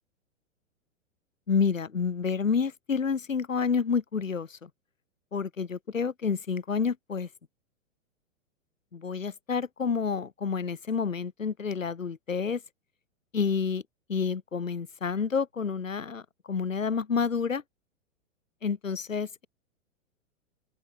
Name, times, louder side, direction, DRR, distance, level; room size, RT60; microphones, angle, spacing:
voice 1, 1.5-4.7 5.3-7.3 8.9-12.6 13.3-13.8 14.1-16.2 16.5-17.6 18.6-19.3, left 5 dB, 85° left, 2.8 m, -29 dB
open air
hypercardioid pair, 110°, 39 cm